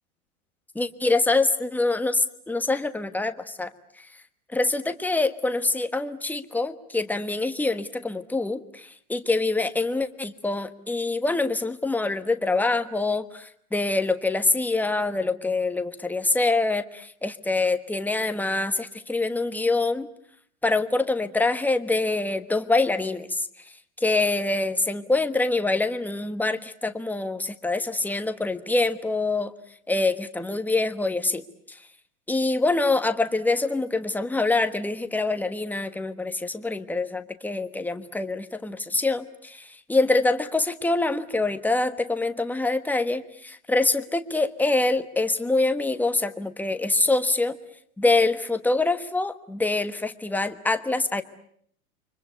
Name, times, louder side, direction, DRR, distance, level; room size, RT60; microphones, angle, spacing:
voice 1, 0.7-3.7 4.5-20.1 20.6-23.5 24.0-29.5 29.9-31.8 32.3-47.6 48.0-51.2, left 2 dB, 5° left, 9 dB, 1.3 m, -25 dB
29.5 x 24.5 x 8.3 m, 0.66 s
hypercardioid pair, 125°, 44 cm